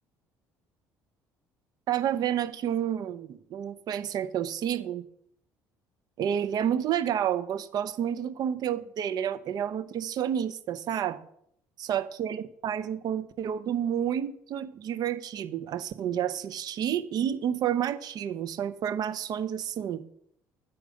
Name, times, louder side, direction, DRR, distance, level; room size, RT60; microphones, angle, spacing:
voice 1, 1.9-5.0 6.2-11.2 11.8-20.0, right 9 dB, 55° right, 0.7 m, -30 dB
8.5 x 4.6 x 6.4 m
hypercardioid pair, 70°, 8 cm